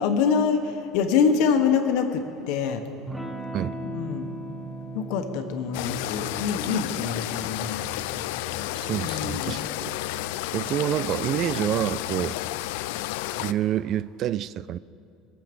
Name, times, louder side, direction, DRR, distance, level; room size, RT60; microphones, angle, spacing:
voice 1, 0.0-2.8 3.8-4.3 4.9-7.8 9.0-9.6, left 6 dB, 70° left, 6 dB, 1.3 m, -25 dB
Electric guitar / Strum, 3.1-11.4, right 2 dB, 5° right, 1.0 m, -40 dB
sound 1, 5.7-13.5, left 16 dB, 90° left, 0.4 m, -31 dB
voice 2, 8.7-9.9 10.5-12.4 13.4-14.8, right 11 dB, 45° right, 18 dB, 0.3 m, -27 dB
21.5 x 7.7 x 7.0 m, 2.5 s
cardioid pair, 150°, 0 cm